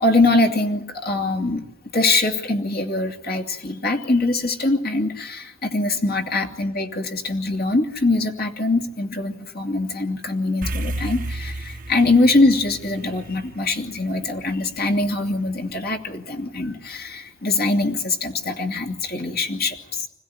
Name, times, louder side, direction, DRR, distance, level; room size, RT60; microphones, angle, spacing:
voice 1, 0.0-1.6 1.9-20.1, left 2 dB, 45° left, 2 dB, 2.7 m, -23 dB
sound 1, 10.6-15.1, right 1 dB, 40° right, 1.2 m, -32 dB
26.5 x 16.0 x 9.6 m, 0.90 s
head